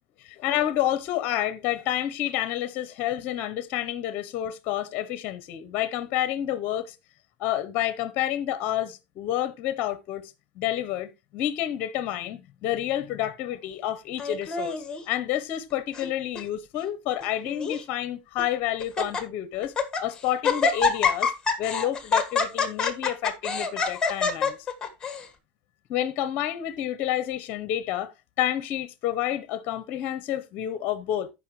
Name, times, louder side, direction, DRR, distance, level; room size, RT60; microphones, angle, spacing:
voice 1, 0.3-7.0 7.4-19.7 20.0-21.3 21.6-24.6 25.9-31.3, left 12 dB, 40° left, 0.8 m, -29 dB
Laughter, 14.2-15.0 15.7-16.1 16.3-16.4 17.2-17.8 18.4-18.5 18.8-19.2 19.6-20.0 20.4-25.2, left 5 dB, 15° left, 1.6 m, -26 dB
15.0 x 5.4 x 3.1 m
supercardioid pair, 150°, 5 cm